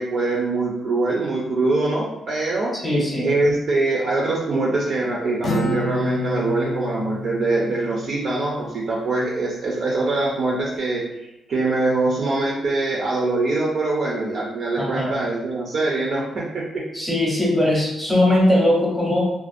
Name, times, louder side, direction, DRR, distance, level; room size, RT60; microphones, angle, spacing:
voice 1, 0.0-2.7 3.2-11.0 11.5-16.8, right 2 dB, 50° right, -3 dB, 0.4 m, -23 dB
voice 2, 2.7-3.4 14.8-15.1 16.9-19.2, left 1 dB, ahead, -5 dB, 0.6 m, -20 dB
Acoustic guitar, 5.4-9.1, left 2 dB, 45° left, 0.4 m, -30 dB
2.4 x 2.1 x 2.5 m, 0.94 s
cardioid pair, 155°, 0 cm